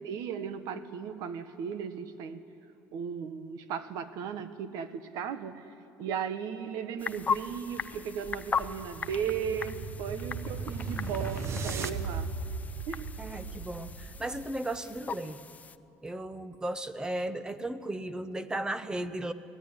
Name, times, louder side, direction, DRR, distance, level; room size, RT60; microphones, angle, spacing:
voice 1, 0.0-2.4 2.9-5.7 6.0-12.3 12.9-13.1, right 7 dB, 70° right, 11 dB, 1.4 m, -36 dB
sound 1, 7.0-15.8, left 6 dB, 25° left, 0.6 m, -38 dB
sound 2, 8.5-14.6, right 4 dB, 45° right, 1.2 m, -37 dB
voice 2, 13.2-15.4 16.0-19.3, right 1 dB, 10° right, 12 dB, 0.9 m, -35 dB
23.5 x 17.5 x 9.9 m, 2.7 s
cardioid pair, 140°, 6 cm